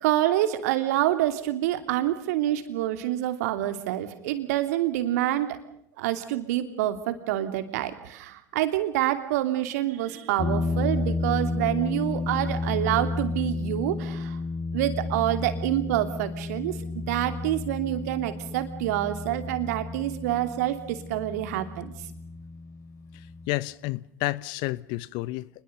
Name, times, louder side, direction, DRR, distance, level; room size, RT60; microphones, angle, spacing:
voice 1, 0.0-5.6 6.0-14.4 14.7-21.9, right 13 dB, 65° right, 2.8 m, -27 dB
sound 1, 10.4-23.5, left 3 dB, 30° left, 2.9 m, -32 dB
voice 2, 23.5-25.5, left 20 dB, 55° left, 0.9 m, -30 dB
27.5 x 21.5 x 6.8 m
figure-of-eight pair, 70°, 9 cm